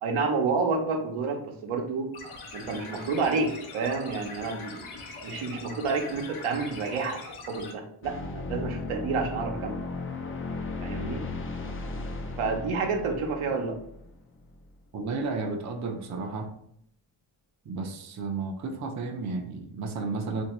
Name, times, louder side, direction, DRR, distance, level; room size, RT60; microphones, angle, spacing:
voice 1, 0.0-2.1 2.5-4.8 5.2-7.2 7.5-9.8 10.8-11.2 12.4-13.8, right 4 dB, 85° right, 3 dB, 0.8 m, -29 dB
sound 1, 2.1-7.7, left 3 dB, 85° left, 0.8 m, -42 dB
sound 2, 8.0-14.7, left 3 dB, 30° left, 0.4 m, -36 dB
voice 2, 14.9-16.5 17.7-20.4, right 3 dB, 35° right, 3 dB, 0.5 m, -32 dB
3.3 x 2.6 x 2.9 m, 0.69 s
cardioid pair, 100°, 48 cm